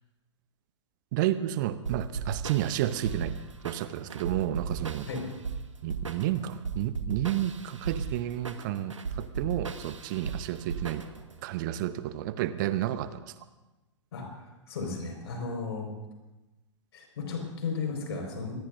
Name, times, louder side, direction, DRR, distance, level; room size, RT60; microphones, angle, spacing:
voice 1, 1.1-3.4 3.6-5.1 5.8-11.0 11.4-13.3, right 13 dB, 40° right, 13 dB, 0.7 m, -31 dB
sound 1, 1.9-11.4, right 5 dB, 75° right, 1.3 m, -37 dB
voice 2, 14.1-15.9 16.9-18.5, left 4 dB, 55° left, 2 dB, 5.0 m, -35 dB
25.0 x 19.0 x 2.6 m, 1.1 s
figure-of-eight pair, 105°, 16 cm